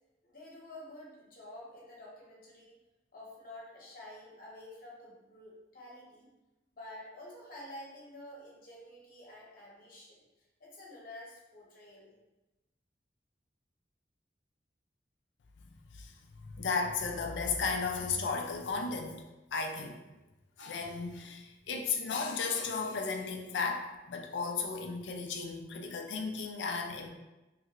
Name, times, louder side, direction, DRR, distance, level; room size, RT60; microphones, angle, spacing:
voice 1, 0.2-2.8 3.1-6.3 6.7-10.2 10.6-12.1, left 1 dB, 55° left, -4 dB, 0.9 m, -49 dB
voice 2, 15.6-19.2 19.5-20.0 20.6-27.1, left 4 dB, 80° left, 3 dB, 0.4 m, -35 dB
3.1 x 2.4 x 2.9 m, 1.0 s
head